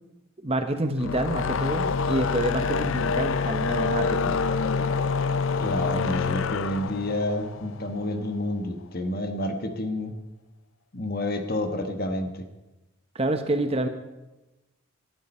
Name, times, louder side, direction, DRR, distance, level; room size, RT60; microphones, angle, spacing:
voice 1, 0.4-4.4 13.1-13.9, right 1 dB, 25° right, 8 dB, 1.0 m, -27 dB
sound 1, 0.9-8.3, left 5 dB, 65° left, 0.5 m, -27 dB
voice 2, 5.6-10.1 10.9-12.4, left 1 dB, 45° left, 6 dB, 1.4 m, -29 dB
18.5 x 12.5 x 4.4 m, 1.0 s
head